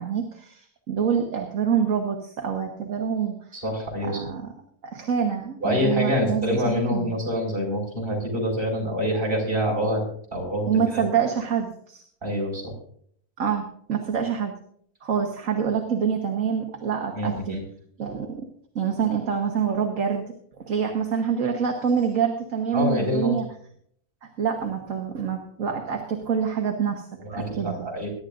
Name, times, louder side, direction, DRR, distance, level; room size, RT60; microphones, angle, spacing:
voice 1, 0.0-3.5 4.0-4.5 4.8-7.1 9.7-9.9 10.7-12.0 13.4-14.5 15.0-17.6 18.0-18.5 18.7-23.5 24.2-27.0 27.3-27.8, right 7 dB, 60° right, 3 dB, 1.7 m, -26 dB
voice 2, 3.5-4.2 5.6-10.0 10.3-11.0 12.2-12.7 17.2-17.6 22.7-23.3 27.2-28.1, equal, 35° right, -2 dB, 5.4 m, -26 dB
22.5 x 11.5 x 2.6 m, 0.63 s
omnidirectional pair, 1.6 m